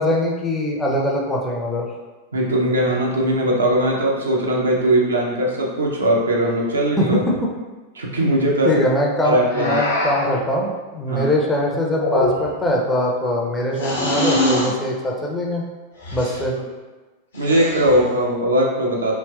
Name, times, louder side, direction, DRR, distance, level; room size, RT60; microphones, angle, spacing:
voice 1, 0.0-1.9 7.0-7.4 8.6-15.6 16.1-16.5, left 1 dB, 10° left, -2 dB, 0.5 m, -22 dB
voice 2, 2.3-7.2 7.9-8.7 9.2-9.8 11.1-11.3 16.1-16.2 16.5-16.6 17.3-19.1, right 1 dB, 75° right, -2 dB, 0.5 m, -20 dB
sound 1, 9.5-10.4 11.9-12.6 13.8-14.7 16.0-16.4 17.3-18.1, left 1 dB, 70° left, 0.9 m, -23 dB
3.1 x 2.8 x 2.2 m, 1.2 s
figure-of-eight pair, 90°, 0 cm